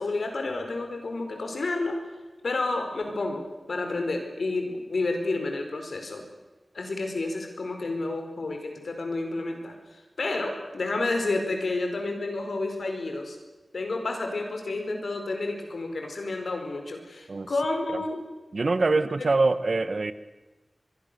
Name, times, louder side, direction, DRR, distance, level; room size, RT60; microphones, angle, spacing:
voice 1, 0.0-2.0 2.4-6.2 6.7-13.4 13.7-18.2 18.9-19.3, left 2 dB, 85° left, 4 dB, 4.8 m, -30 dB
voice 2, 18.5-20.1, right 3 dB, 60° right, 13 dB, 1.4 m, -24 dB
25.0 x 22.5 x 7.0 m, 1.2 s
wide cardioid pair, 85°, 0 cm